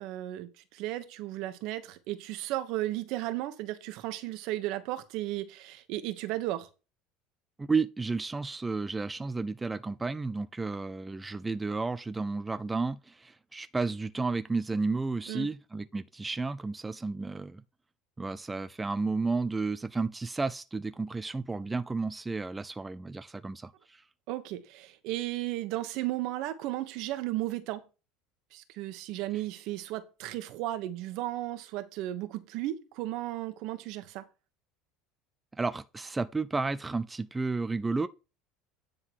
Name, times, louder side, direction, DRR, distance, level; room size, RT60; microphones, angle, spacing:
voice 1, 0.0-6.7 15.3-15.5 24.3-27.8 28.5-34.2, right 15 dB, 65° right, 1.2 m, -35 dB
voice 2, 7.6-17.6 18.2-24.0 29.3-29.4 35.6-38.1, right 3 dB, 15° right, 0.4 m, -32 dB
9.8 x 3.9 x 6.2 m
supercardioid pair, 115°, 0 cm